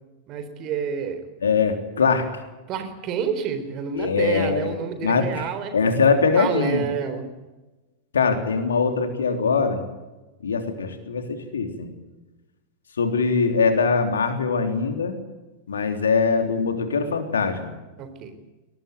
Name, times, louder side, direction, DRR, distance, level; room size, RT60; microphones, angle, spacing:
voice 1, 0.3-1.3 2.7-5.7 6.3-7.3 18.0-18.3, right 7 dB, 35° right, 9 dB, 4.2 m, -29 dB
voice 2, 1.4-2.3 3.9-4.8 5.0-5.5 5.7-6.8 8.1-9.8 10.4-11.9 13.0-15.2 15.7-17.7, left 5 dB, 70° left, 7 dB, 3.5 m, -22 dB
22.5 x 19.0 x 9.4 m, 1.1 s
figure-of-eight pair, 90°, 0 cm